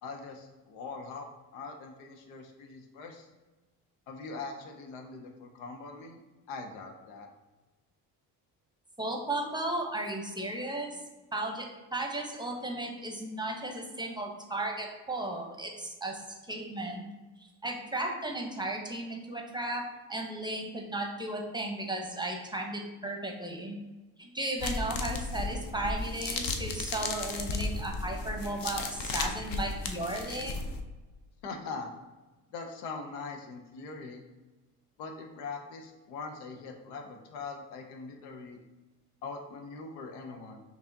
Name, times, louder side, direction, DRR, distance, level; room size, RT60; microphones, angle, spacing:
voice 1, 0.0-1.3 1.5-3.3 4.1-6.2 6.5-7.3 31.4-31.9 32.5-34.2 35.0-38.6 39.2-40.6, left 4 dB, 85° left, 3 dB, 0.6 m, -42 dB
voice 2, 9.0-10.9 11.3-16.2 16.5-17.1 17.4-19.8 20.1-23.8 24.2-30.6, right 2 dB, 10° right, 1 dB, 0.7 m, -35 dB
sound 1, 24.6-30.8, left 3 dB, 45° left, 0.6 m, -35 dB
4.6 x 2.7 x 2.6 m, 1.2 s
hypercardioid pair, 55°, 48 cm